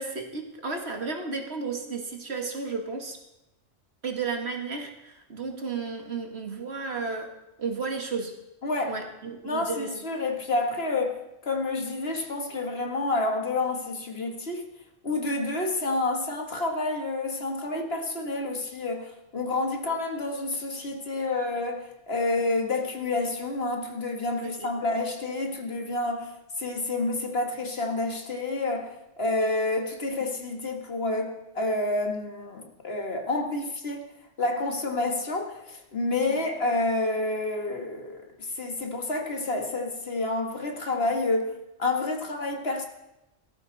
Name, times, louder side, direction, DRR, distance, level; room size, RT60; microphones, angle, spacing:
voice 1, 0.0-3.2 4.0-7.3 7.6-8.3 8.9-9.9 24.4-24.7 36.3-36.4, right 4 dB, 60° right, 2.0 m, -33 dB
voice 2, 8.6-9.0 9.4-14.6 15.0-34.0 34.4-42.9, left 2 dB, 55° left, 1.9 m, -29 dB
17.5 x 13.5 x 4.1 m
omnidirectional pair, 1.3 m